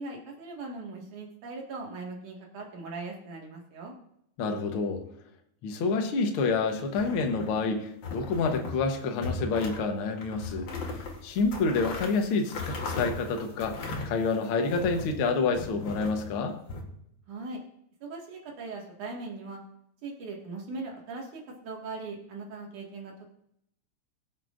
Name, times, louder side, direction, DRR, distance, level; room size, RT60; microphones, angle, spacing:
voice 1, 0.0-3.9 17.3-17.6 18.0-19.6 20.0-23.3, right 3 dB, 65° right, -1 dB, 3.2 m, -40 dB
voice 2, 4.4-5.0 5.6-16.6, left 4 dB, 90° left, 4 dB, 1.1 m, -28 dB
sound 1, 6.9-7.6 8.0-8.8 9.1-9.8 10.2-15.2 15.5-16.8, left 3 dB, 50° left, 2.5 m, -37 dB
22.0 x 7.5 x 2.5 m, 0.74 s
omnidirectional pair, 4.1 m